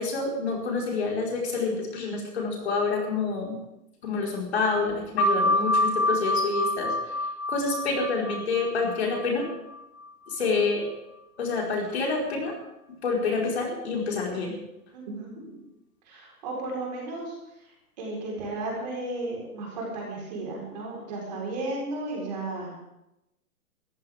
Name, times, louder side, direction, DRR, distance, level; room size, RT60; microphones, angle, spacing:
voice 1, 0.0-3.6 4.0-6.9 7.5-9.5 10.3-10.8 11.4-12.5 13.0-14.5, left 4 dB, 45° left, -2 dB, 4.8 m, -27 dB
sound 1, 5.2-10.4, left 1 dB, 20° left, 4.0 m, -27 dB
voice 2, 14.9-15.6 16.0-17.4 17.6-22.7, right 2 dB, 25° right, -2 dB, 4.5 m, -34 dB
22.5 x 14.5 x 3.7 m, 0.89 s
hypercardioid pair, 175°, 45 cm